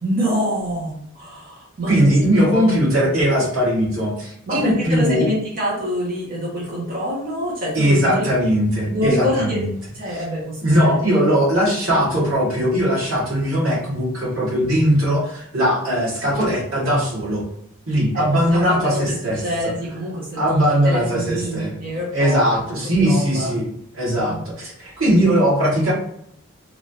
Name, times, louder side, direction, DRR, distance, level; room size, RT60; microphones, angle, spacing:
voice 1, 0.0-1.9 2.5-2.9 4.5-8.3 8.9-9.6 9.9-11.3 18.1-18.2 18.5-22.4 22.8-23.5 24.3-24.4, equal, 45° right, -5 dB, 0.8 m, -26 dB
voice 2, 1.9-5.3 7.7-9.7 10.6-15.2 15.5-17.4 17.9-19.4 20.4-21.7 22.1-23.7 23.9-24.7 25.0-25.9, equal, 80° right, -5 dB, 1.3 m, -19 dB
3.1 x 2.5 x 2.6 m, 0.70 s
head